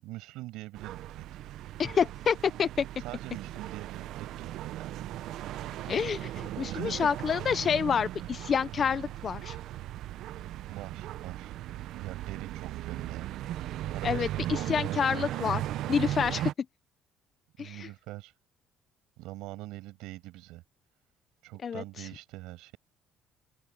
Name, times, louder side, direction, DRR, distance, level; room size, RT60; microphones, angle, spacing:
voice 1, 0.0-1.3 3.0-5.0 6.7-6.9 10.7-11.5 12.0-13.3 13.9-15.0 17.6-18.3 19.2-20.6 21.4-22.8, right 19 dB, 90° right, 6.2 m, -43 dB
sound 1, 0.8-16.5, right 13 dB, 60° right, 0.7 m, -37 dB
voice 2, 1.8-2.8 5.9-9.6 14.0-15.6 15.9-16.5 17.6-17.9 21.6-22.1, left 7 dB, 30° left, 0.5 m, -28 dB
open air
cardioid pair, 160°, 0 cm